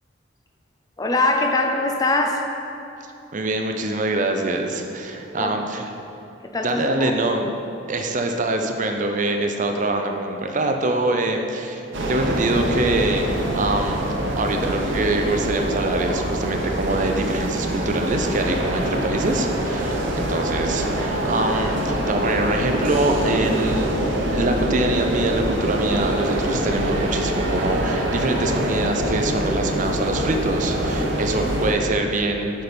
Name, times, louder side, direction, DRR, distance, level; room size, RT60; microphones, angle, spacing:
voice 1, 1.0-2.5 5.4-5.6 6.4-7.1, left 2 dB, 20° left, 3 dB, 0.4 m, -22 dB
voice 2, 3.3-5.9 6.6-7.5 7.9-11.8 12.1-23.9 24.3-32.6, right 2 dB, 40° right, 4 dB, 0.5 m, -24 dB
sound 1, 11.9-31.7, right 1 dB, 80° right, 0.9 m, -24 dB
sound 2, 15.3-17.2, left 1 dB, 40° left, 0.9 m, -38 dB
8.6 x 4.1 x 5.1 m, 2.9 s
head